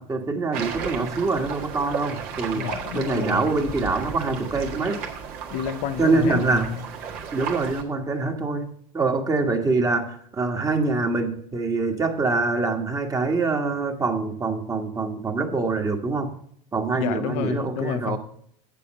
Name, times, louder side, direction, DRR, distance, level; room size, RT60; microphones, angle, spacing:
voice 1, 0.0-2.7 2.9-5.0 6.0-6.7 7.3-16.4 16.7-18.2, right 3 dB, 20° right, 1.4 m, -25 dB
sound 1, 0.5-7.8, right 6 dB, 65° right, 1.7 m, -34 dB
voice 2, 2.5-3.6 5.5-6.8 16.9-18.2, left 10 dB, 80° left, 0.7 m, -30 dB
8.4 x 6.9 x 5.2 m
supercardioid pair, 105°, 16 cm